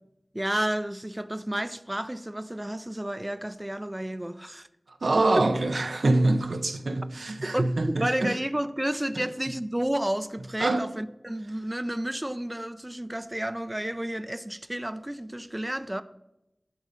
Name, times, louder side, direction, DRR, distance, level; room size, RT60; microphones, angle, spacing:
voice 1, 0.3-4.7 5.4-5.5 7.5-16.0, right 1 dB, 20° right, 0.4 m, -31 dB
voice 2, 4.9-8.4 9.2-9.3 10.6-10.9, right 2 dB, 85° right, 0.7 m, -25 dB
11.0 x 4.0 x 6.8 m
wide cardioid pair, 60°, 0 cm